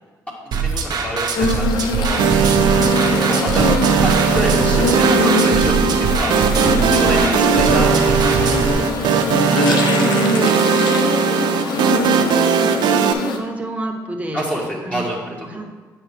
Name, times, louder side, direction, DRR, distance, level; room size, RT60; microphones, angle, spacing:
voice 1, 0.5-2.2 3.1-8.5 9.5-10.7 14.3-15.2, right 1 dB, 15° left, -3 dB, 1.6 m, -27 dB
sound 1, 0.5-8.7, right 5 dB, 65° right, 0.9 m, -23 dB
sound 2, 1.4-13.4, left 3 dB, 75° left, 0.7 m, -22 dB
sound 3, 2.2-13.1, right 7 dB, 80° right, 0.5 m, -18 dB
voice 2, 12.0-14.4 14.8-15.6, right 1 dB, 20° right, 2 dB, 1.1 m, -31 dB
8.8 x 5.7 x 3.4 m, 1.3 s
cardioid pair, 85°, 8 cm